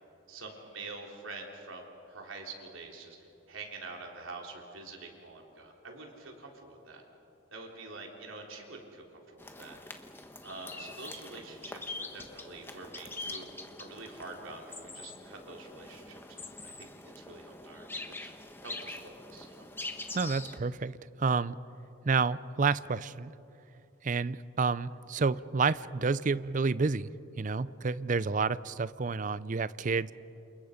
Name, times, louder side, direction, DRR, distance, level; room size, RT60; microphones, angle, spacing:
voice 1, 0.3-3.2 3.5-7.0 7.5-9.8 10.4-13.5 13.8-17.9 18.2-18.3 18.6-19.7, right 3 dB, 80° right, 1 dB, 3.7 m, -46 dB
sound 1, 9.4-20.6, left 2 dB, 10° left, 1.2 m, -44 dB
voice 2, 20.1-21.6 22.0-23.3 24.0-27.1 27.4-30.1, right 4 dB, 40° right, 17 dB, 0.5 m, -29 dB
29.0 x 28.0 x 5.2 m, 2.9 s
head